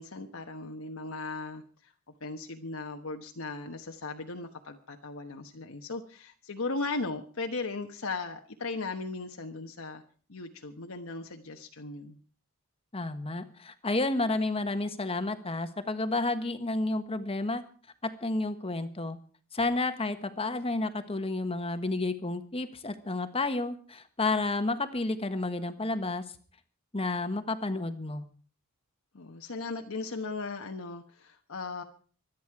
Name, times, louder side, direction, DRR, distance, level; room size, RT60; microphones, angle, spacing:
voice 1, 0.0-1.9 2.2-10.0 10.3-12.2 29.1-31.8, left 3 dB, 65° left, 4 dB, 1.2 m, -37 dB
voice 2, 12.9-17.6 18.0-19.2 19.5-26.2 26.9-28.2, left 2 dB, 25° left, 10 dB, 1.3 m, -31 dB
24.5 x 9.4 x 4.8 m, 0.42 s
head